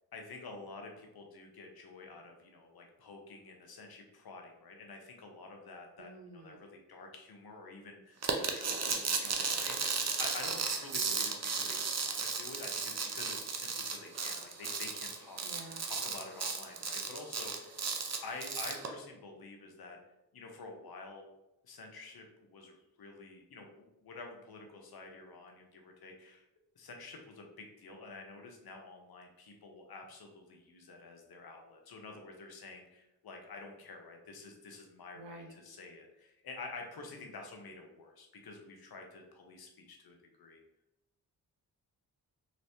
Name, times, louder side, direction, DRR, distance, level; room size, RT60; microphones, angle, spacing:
voice 1, 0.1-15.4 15.8-17.8 18.2-20.0 20.3-21.3 21.6-26.4 26.8-40.6, left 3 dB, 60° left, 2 dB, 0.9 m, -49 dB
voice 2, 6.0-6.6 15.4-15.9 35.2-35.5, right 2 dB, 85° right, 3 dB, 0.7 m, -50 dB
sound 1, 8.2-18.9, right 5 dB, 40° right, 0.6 m, -35 dB
3.1 x 3.1 x 2.9 m, 0.93 s
supercardioid pair, 45°, 41 cm